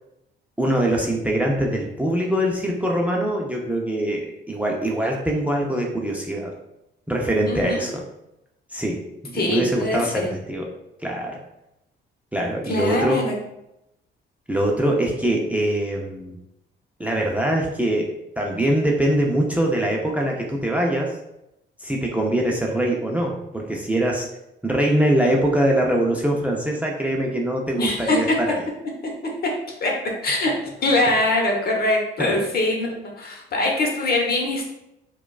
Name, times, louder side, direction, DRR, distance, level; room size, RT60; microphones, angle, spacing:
voice 1, 0.6-6.5 7.1-8.0 8.7-10.7 11.0-11.4 12.3-13.2 14.5-16.4 17.0-21.1 21.8-24.3 24.6-28.6 32.2-32.4, right 1 dB, 5° right, -1 dB, 0.5 m, -23 dB
voice 2, 7.5-7.8 9.3-10.3 12.7-13.3 27.8-28.2 29.8-29.9 30.2-30.5 30.8-34.7, left 2 dB, 50° left, 0 dB, 1.0 m, -23 dB
4.6 x 2.3 x 2.3 m, 0.86 s
cardioid pair, 90°, 20 cm